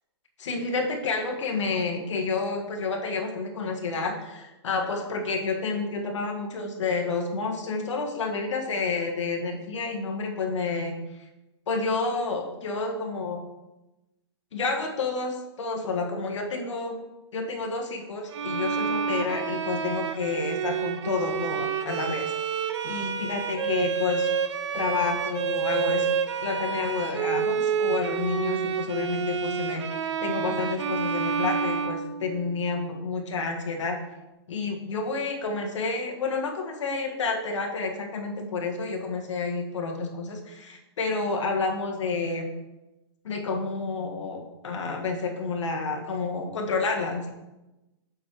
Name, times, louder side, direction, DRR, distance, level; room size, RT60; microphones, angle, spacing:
voice 1, 0.4-11.3 11.7-13.4 14.5-17.0 17.3-22.5 22.8-24.3 24.7-26.1 26.4-33.9 34.5-42.5 43.2-47.3, left 4 dB, 85° left, 2 dB, 1.5 m, -30 dB
Bowed string instrument, 18.3-32.6, right 6 dB, 75° right, 0.8 m, -29 dB
7.4 x 5.1 x 4.6 m, 1.0 s
hypercardioid pair, 175°, 15 cm